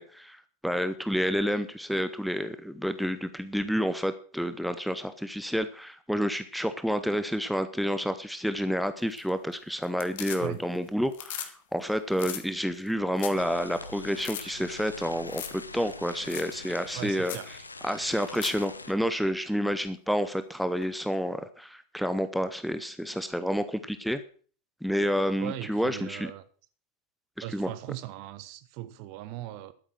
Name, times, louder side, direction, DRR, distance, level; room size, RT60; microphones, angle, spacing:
voice 1, 0.0-17.4 17.8-24.2 24.8-26.3 27.4-27.7, equal, ahead, 0.7 m, -29 dB
sound 1, 9.0-9.5 9.8-10.8 11.0-11.5 11.8-11.9 12.1-12.4 12.9-13.0 13.2-13.4 13.8-13.9 14.2-14.4 15.3-15.6 15.9-16.0 16.3-16.5 16.9-17.0 17.2-17.5 18.1-18.6 20.8-20.9, left 10 dB, 55° left, 1.8 m, -38 dB
sound 2, 13.4-18.9, left 3 dB, 80° left, 0.9 m, -44 dB
voice 2, 16.9-17.4 25.4-26.4 27.4-29.7, right 14 dB, 45° right, 0.8 m, -39 dB
12.0 x 9.0 x 6.2 m
figure-of-eight pair, 90°, 0 cm